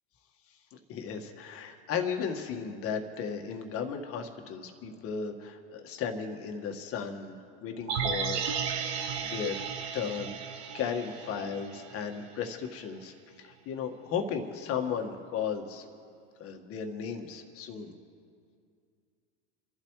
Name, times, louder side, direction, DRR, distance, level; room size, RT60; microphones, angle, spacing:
voice 1, 0.7-8.6 9.2-9.6 9.9-15.8 16.4-17.9, left 6 dB, 45° left, 4 dB, 1.7 m, -35 dB
sound 1, 7.9-12.1 12.4-12.5, right 7 dB, 60° right, 1.4 m, -34 dB
29.5 x 12.0 x 3.2 m, 2.3 s
hypercardioid pair, 105°, 32 cm